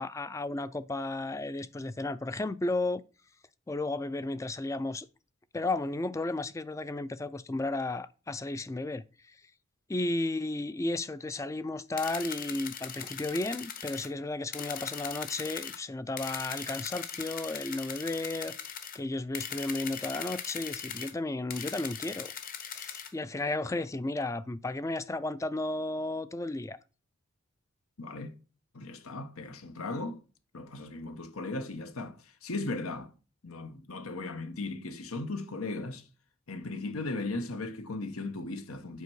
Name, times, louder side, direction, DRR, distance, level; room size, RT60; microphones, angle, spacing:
voice 1, 0.0-3.0 3.7-5.1 5.5-9.0 9.9-22.3 22.6-26.8, left 2 dB, 15° left, 0.3 m, -33 dB
sound 1, 12.0-14.1 14.5-15.8 16.2-19.0 19.3-21.1 21.5-23.1, left 8 dB, 40° left, 1.0 m, -40 dB
voice 2, 28.0-28.3 28.7-30.2 30.5-33.1 33.4-36.1 36.5-39.0, left 2 dB, 90° left, 1.1 m, -37 dB
8.4 x 4.4 x 6.2 m
head